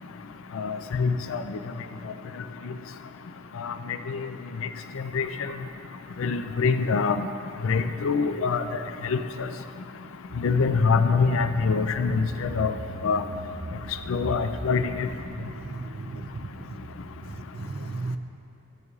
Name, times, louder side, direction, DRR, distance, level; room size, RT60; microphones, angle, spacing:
voice 1, 0.6-1.4 3.6-3.7 4.1-4.2 5.1-5.3 6.2-7.3 7.6-8.6 9.1-9.2 10.4-12.7 13.0-13.2 14.1-15.1, left 5 dB, 65° left, 9 dB, 0.4 m, -24 dB
voice 2, 9.0-9.3 15.3-16.8 17.2-18.2, right 3 dB, 45° right, 9 dB, 0.4 m, -36 dB
Car / Engine, 10.3-17.3, right 2 dB, 90° right, 0.8 m, -42 dB
13.5 x 9.4 x 2.4 m, 2.6 s
head